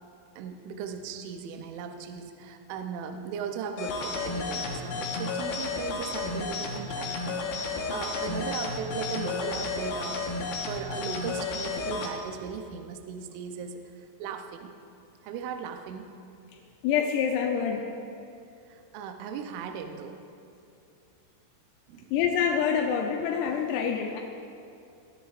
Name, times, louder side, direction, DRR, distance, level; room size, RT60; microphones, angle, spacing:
voice 1, 0.4-10.2 10.6-14.8 15.2-16.1 18.7-20.2 21.9-22.1, right 6 dB, 80° right, 4 dB, 3.0 m, -38 dB
sound 1, 3.8-12.1, left 3 dB, 70° left, 2.5 m, -32 dB
voice 2, 16.8-17.9 22.1-24.2, left 7 dB, 90° left, 1 dB, 3.5 m, -26 dB
23.5 x 13.5 x 2.5 m, 2.5 s
omnidirectional pair, 5.8 m